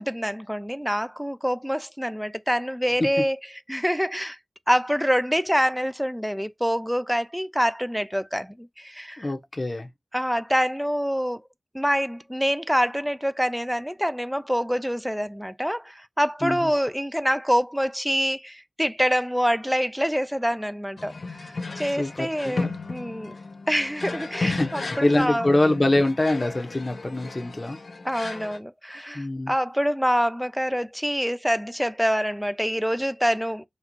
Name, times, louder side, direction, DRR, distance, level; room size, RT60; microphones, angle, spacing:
voice 1, 0.0-3.4 3.7-4.4 4.7-9.3 10.1-11.4 11.7-23.4 23.7-25.5 28.0-33.6, equal, ahead, 0.4 m, -26 dB
voice 2, 9.2-9.9 16.4-16.6 22.0-22.7 24.4-27.8 29.1-29.5, left 2 dB, 35° left, 0.8 m, -24 dB
sound 1, 21.0-28.6, left 3 dB, 70° left, 0.6 m, -34 dB
4.1 x 2.3 x 4.4 m
wide cardioid pair, 65°, 0 cm